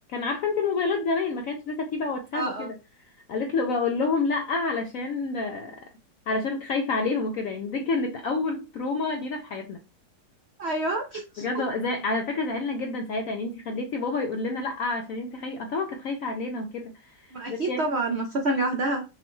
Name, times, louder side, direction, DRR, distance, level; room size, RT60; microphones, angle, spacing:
voice 1, 0.1-2.7 3.3-5.8 6.3-9.8 11.4-17.9, left 3 dB, 75° left, 0.7 m, -28 dB
voice 2, 2.3-2.7 10.6-11.4 17.3-19.0, right 2 dB, 70° right, 0.6 m, -27 dB
6.0 x 2.2 x 3.0 m
omnidirectional pair, 1.9 m